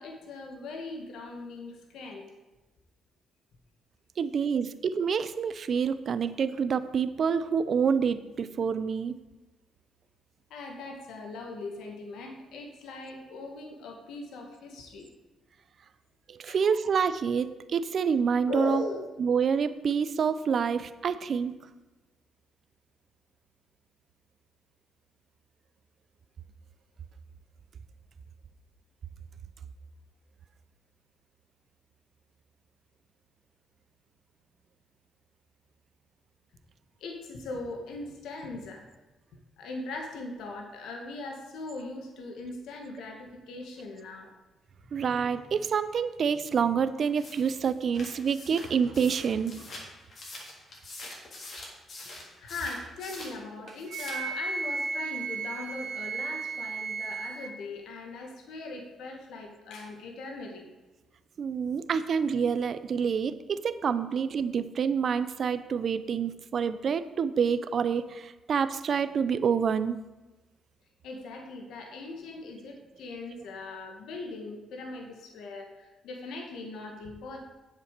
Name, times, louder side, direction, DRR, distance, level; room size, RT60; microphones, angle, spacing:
voice 1, 0.0-2.3 10.5-15.1 16.5-16.6 18.5-19.0 37.0-38.9 39.6-44.3 52.0-52.1 52.4-60.7 71.0-77.4, left 3 dB, 80° left, 2 dB, 2.0 m, -40 dB
voice 2, 4.2-9.2 16.3-18.8 19.2-21.5 44.9-49.7 61.4-70.0, right 6 dB, 55° right, 12 dB, 0.7 m, -27 dB
sound 1, 47.2-53.4 53.7-54.3, left 2 dB, 50° left, 3.4 m, -44 dB
Wind instrument woodwind instrument, 53.9-57.6, right 4 dB, 75° right, 1.4 m, -34 dB
8.1 x 7.5 x 6.8 m, 1.1 s
cardioid pair, 90°, 0 cm